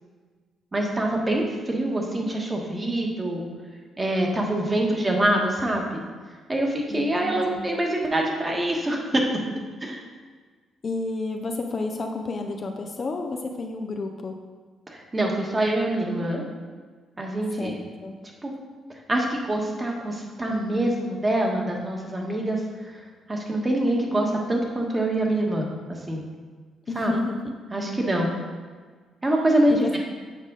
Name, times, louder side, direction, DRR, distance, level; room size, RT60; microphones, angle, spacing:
voice 1, 0.7-3.5 4.0-6.0 6.5-9.2 9.8-10.0 14.9-16.4 17.2-17.8 18.4-18.5 19.1-22.6 23.3-26.2 26.9-27.1 27.7-28.3 29.2-30.0, right 1 dB, 20° right, 0 dB, 1.4 m, -25 dB
voice 2, 6.9-7.7 10.8-14.4 17.6-17.8 18.0-18.2 26.9-27.5 29.7-30.0, left 3 dB, 40° left, 4 dB, 0.6 m, -31 dB
7.4 x 4.9 x 4.0 m, 1.5 s
cardioid pair, 90°, 0 cm